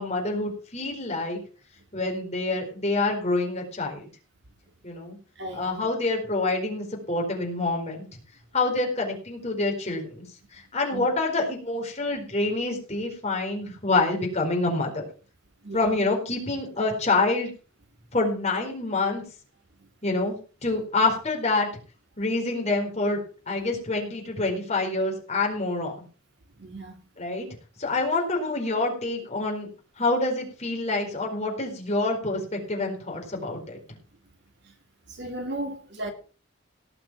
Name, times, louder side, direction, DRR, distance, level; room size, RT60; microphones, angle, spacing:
voice 1, 0.0-1.4 1.9-4.1 4.8-5.2 5.5-8.0 8.5-10.2 10.5-15.0 15.7-17.5 18.1-19.2 20.0-20.4 20.6-21.7 22.2-23.2 23.5-25.9 27.2-27.5 27.8-29.7 30.0-33.8, left 2 dB, 30° left, 4.4 m, -27 dB
voice 2, 5.4-5.8 10.9-11.1 15.6-15.9 26.6-27.0 35.1-36.1, right 1 dB, 55° right, 2.7 m, -35 dB
18.0 x 6.3 x 6.1 m
head